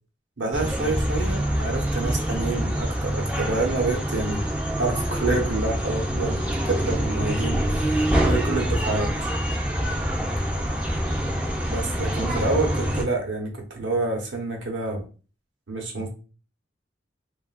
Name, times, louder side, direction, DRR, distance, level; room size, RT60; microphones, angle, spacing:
voice 1, 0.4-4.4 4.8-9.3 11.7-15.0 15.7-16.1, right 3 dB, 80° right, 2 dB, 0.9 m, -28 dB
sound 1, 0.5-13.0, equal, 5° right, 0.4 m, -25 dB
3.2 x 2.4 x 2.3 m, 0.35 s
head